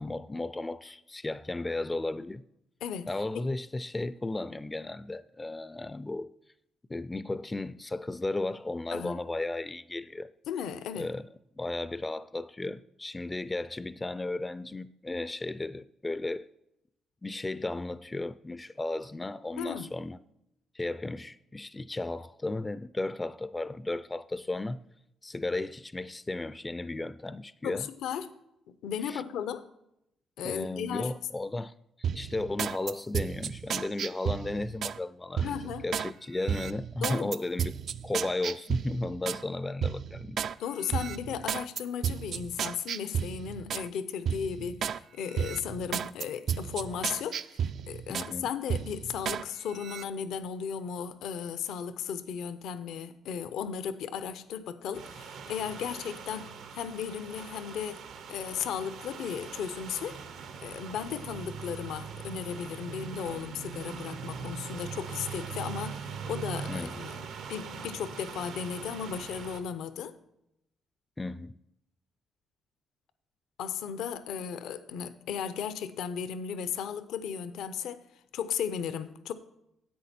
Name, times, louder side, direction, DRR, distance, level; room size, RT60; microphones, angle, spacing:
voice 1, 0.0-2.4 3.1-6.3 6.9-10.3 11.0-11.2 11.6-16.5 17.2-20.2 20.7-24.8 25.2-27.9 29.1-29.2 30.4-31.7 32.0-35.6 35.8-37.7 38.0-40.4 48.1-48.5 66.7-66.9 71.2-71.6, left 2 dB, 20° left, 0.3 m, -34 dB
voice 2, 10.5-11.1 19.6-19.9 27.6-28.3 28.7-29.7 30.4-31.1 35.4-35.9 37.0-37.3 40.6-58.0 58.3-60.2 60.6-70.2 73.6-78.0 78.3-79.3, left 8 dB, 85° left, 0.6 m, -35 dB
sound 1, 32.0-35.0 35.4-36.1 36.5-39.4 39.8-40.5 40.9-43.9 44.3-45.0 45.3-48.3 48.7-49.4 49.8-50.0, right 8 dB, 65° right, 0.3 m, -33 dB
sound 2, 54.9-69.6, right 6 dB, 85° right, 1.0 m, -41 dB
10.5 x 8.0 x 4.2 m
cardioid pair, 90°, 0 cm